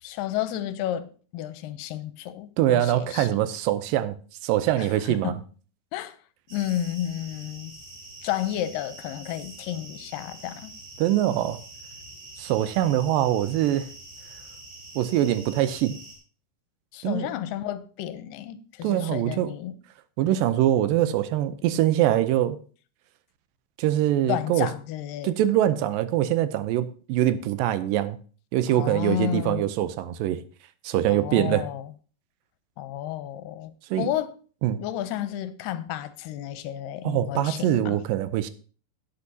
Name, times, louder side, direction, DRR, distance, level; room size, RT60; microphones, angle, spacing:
voice 1, 0.0-3.5 4.8-5.4 5.9-6.2 6.5-7.8 8.2-10.8 16.9-19.8 24.3-25.3 28.7-29.6 31.1-31.9 32.8-34.3 34.8-38.0, left 12 dB, 80° left, 2.3 m, -32 dB
voice 2, 2.6-4.2 4.4-5.4 11.0-11.6 12.4-13.9 15.0-16.0 17.0-17.3 18.8-19.5 20.2-22.6 23.8-24.7 25.2-28.2 28.5-30.4 30.8-31.6 33.9-34.1 34.6-34.8 37.0-38.5, right 12 dB, 80° right, 2.3 m, -23 dB
sound 1, 6.5-16.1, right 2 dB, 25° right, 4.0 m, -45 dB
17.0 x 8.2 x 2.7 m
omnidirectional pair, 4.0 m